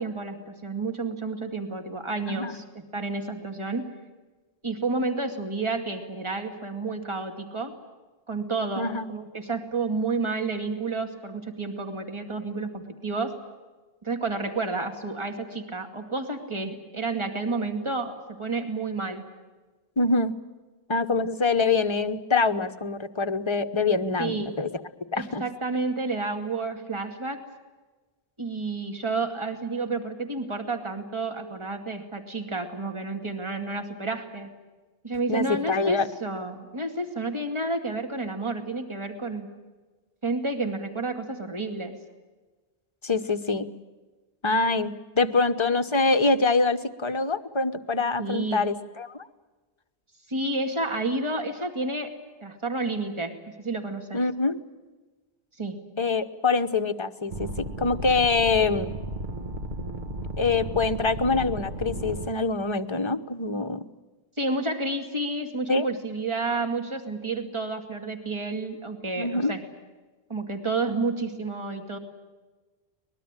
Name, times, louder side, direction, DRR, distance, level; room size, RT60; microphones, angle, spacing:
voice 1, 0.0-3.9 4.6-7.7 8.3-13.4 14.0-19.2 24.2-24.5 25.1-27.4 28.4-34.5 35.0-39.5 40.2-42.0 48.2-48.7 50.3-54.2 55.6-55.8 64.4-69.6 70.3-72.0, right 3 dB, 30° right, 5 dB, 2.4 m, -30 dB
voice 2, 8.8-9.1 20.0-20.4 20.9-24.7 25.1-25.4 35.3-36.1 43.0-43.7 44.4-49.3 54.1-54.6 56.0-58.9 60.4-63.8 65.7-65.9 69.2-69.5, left 3 dB, 30° left, 8 dB, 1.1 m, -25 dB
sound 1, 57.3-62.3, right 2 dB, 50° right, 1.6 m, -34 dB
24.0 x 20.5 x 9.0 m, 1.3 s
omnidirectional pair, 1.0 m